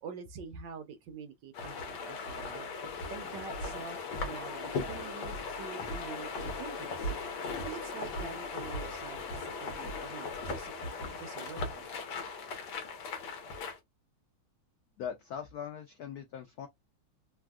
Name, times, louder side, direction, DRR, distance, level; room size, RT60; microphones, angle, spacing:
voice 1, 0.0-2.6 3.1-7.1 7.6-11.9, right 6 dB, 70° right, 1.2 m, -46 dB
sound 1, 1.5-13.8, left 3 dB, 65° left, 1.3 m, -38 dB
voice 2, 15.0-16.7, left 8 dB, 85° left, 0.8 m, -40 dB
3.4 x 2.4 x 2.3 m
omnidirectional pair, 2.3 m